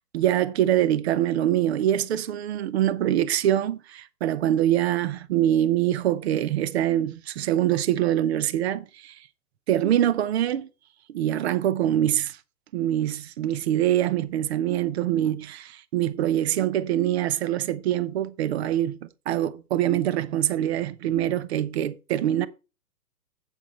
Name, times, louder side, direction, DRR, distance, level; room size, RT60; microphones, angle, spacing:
voice 1, 0.0-9.2 9.7-10.7 11.1-12.4 12.7-22.5, right 12 dB, 40° right, 0.8 m, -24 dB
8.3 x 7.4 x 3.8 m
figure-of-eight pair, 125°, 50 cm